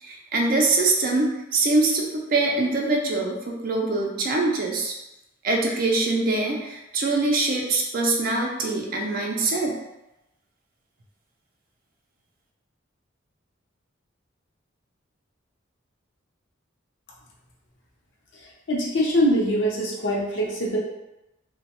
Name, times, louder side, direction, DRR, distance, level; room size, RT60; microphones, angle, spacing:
voice 1, 0.0-4.9 5.4-9.8, right 3 dB, 45° right, 0 dB, 0.5 m, -23 dB
voice 2, 18.7-20.8, equal, 65° left, -3 dB, 0.7 m, -23 dB
2.9 x 2.1 x 3.0 m, 0.94 s
head